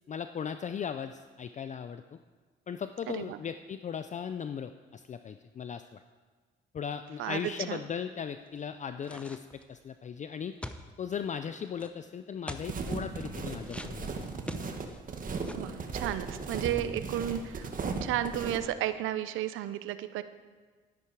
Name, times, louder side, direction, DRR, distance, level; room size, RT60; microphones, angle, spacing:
voice 1, 0.1-2.2 2.7-6.0 6.7-10.5 11.0-14.2 14.5-14.8, left 7 dB, 40° left, 10 dB, 0.4 m, -37 dB
voice 2, 3.1-3.4 7.2-7.8 15.6-20.2, right 12 dB, 85° right, 13 dB, 0.6 m, -33 dB
sound 1, 9.0-9.7 10.6-11.2 11.8-11.9 12.5-12.7 13.7-15.0 15.4-15.7, left 1 dB, 5° left, 0.7 m, -43 dB
sound 2, 12.6-18.6, right 4 dB, 45° right, 1.4 m, -36 dB
12.0 x 10.5 x 4.8 m, 1.5 s
cardioid pair, 90°, 20 cm